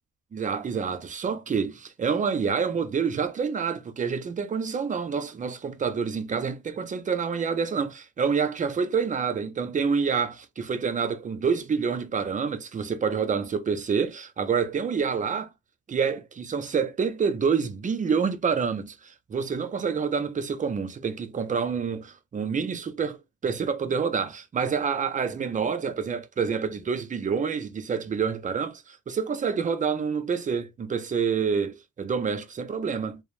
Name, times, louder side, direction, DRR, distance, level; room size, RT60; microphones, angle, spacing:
voice 1, 0.3-15.5 15.9-33.2, right 6 dB, 25° right, 0.4 m, -27 dB
2.8 x 2.0 x 2.4 m
cardioid pair, 90°, 30 cm